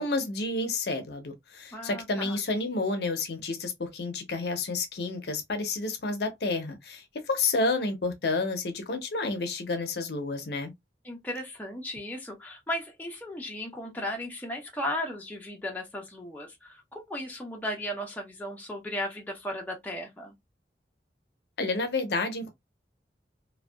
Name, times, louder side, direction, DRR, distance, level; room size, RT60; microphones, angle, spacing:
voice 1, 0.0-10.7 21.6-22.5, left 3 dB, 65° left, 0.6 m, -30 dB
voice 2, 1.7-2.4 11.0-20.3, left 1 dB, 10° left, 0.6 m, -36 dB
2.6 x 2.2 x 2.2 m
head